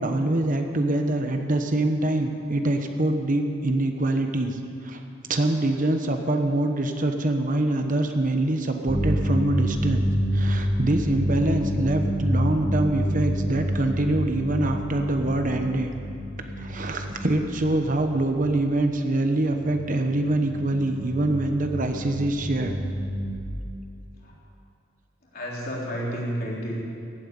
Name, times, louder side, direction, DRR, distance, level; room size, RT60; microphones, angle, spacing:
voice 1, 0.0-5.0 5.3-10.0 10.3-15.9 16.6-22.8, right 1 dB, 45° right, 5 dB, 1.0 m, -24 dB
sound 1, 8.9-18.6 19.4-23.4, equal, 10° left, 2.2 m, -28 dB
voice 2, 25.3-26.8, equal, 50° left, -4 dB, 3.6 m, -31 dB
15.5 x 9.1 x 9.6 m, 2.5 s
head